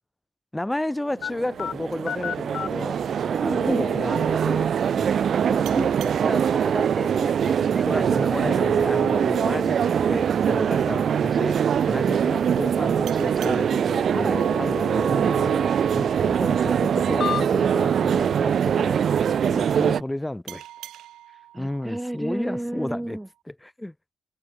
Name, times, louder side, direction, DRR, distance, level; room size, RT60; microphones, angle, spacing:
voice 1, 0.5-3.0 3.4-4.7 4.9-5.8 7.8-19.2 19.4-20.6 21.6-23.2 23.5-23.9, left 1 dB, 10° left, 3.2 m, -32 dB
sound 1, 1.2-17.9, left 8 dB, 65° left, 4.9 m, -38 dB
sound 2, 1.2-20.0, right 8 dB, 65° right, 0.3 m, -23 dB
voice 2, 3.2-3.8 5.7-8.5 9.9-10.2 21.5-23.3, right 1 dB, 10° right, 3.2 m, -32 dB
sound 3, 5.6-8.9 13.1-16.3 20.5-23.4, right 13 dB, 80° right, 5.0 m, -47 dB
supercardioid pair, 50°, 0 cm